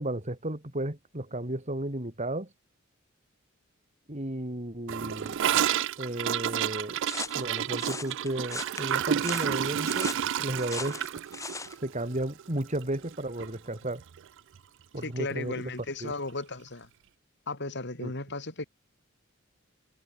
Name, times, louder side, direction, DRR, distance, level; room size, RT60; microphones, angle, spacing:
voice 1, 0.0-2.5 4.1-5.4 6.0-7.0 7.3-11.0 11.8-14.0 14.9-15.6 16.0-16.1 18.0-18.1, right 1 dB, 35° right, 3.8 m, -33 dB
Gurgling / Toilet flush, 4.9-13.1 13.4-13.5 13.8-14.3 14.5-14.6 14.9-15.0 16.0-16.1, right 9 dB, 65° right, 0.4 m, -30 dB
sound 1, 7.0-11.8, left 4 dB, 15° left, 1.2 m, -39 dB
voice 2, 15.0-16.9 17.5-18.7, left 2 dB, 60° left, 5.0 m, -35 dB
head